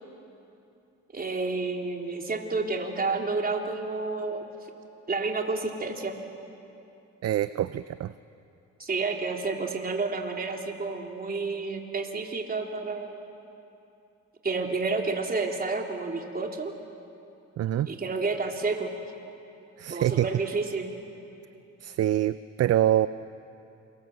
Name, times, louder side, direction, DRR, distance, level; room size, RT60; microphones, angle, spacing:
voice 1, 1.1-4.5 5.1-6.2 8.8-13.2 14.4-16.7 17.9-18.9 19.9-20.9, right 3 dB, 30° right, 2 dB, 3.4 m, -30 dB
voice 2, 7.2-8.1 17.6-17.9 19.8-20.3 21.8-23.1, right 12 dB, 55° right, 14 dB, 0.6 m, -25 dB
28.5 x 26.0 x 7.9 m, 2.8 s
cardioid pair, 90°, 30 cm